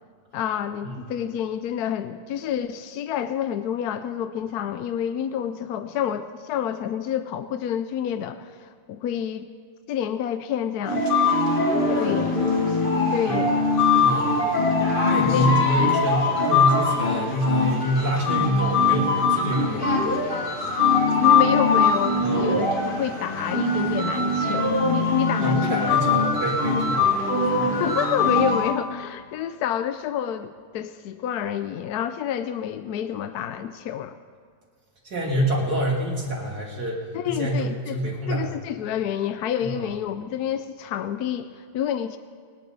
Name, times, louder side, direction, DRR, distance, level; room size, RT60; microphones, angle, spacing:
voice 1, 0.3-9.5 9.9-11.1 12.0-12.5 13.1-13.6 15.3-15.6 21.2-26.0 27.5-34.2 37.1-42.2, left 9 dB, 70° left, 10 dB, 1.1 m, -29 dB
sound 1, 10.9-28.7, left 3 dB, 30° left, 1.9 m, -22 dB
voice 2, 12.1-12.4 13.2-13.4 14.0-14.6 15.1-19.9 22.2-22.6 25.4-27.1 27.5-27.8 35.0-38.5 39.6-39.9, right 1 dB, 60° right, -3 dB, 3.5 m, -27 dB
27.0 x 10.0 x 4.0 m, 2.1 s
omnidirectional pair, 1.8 m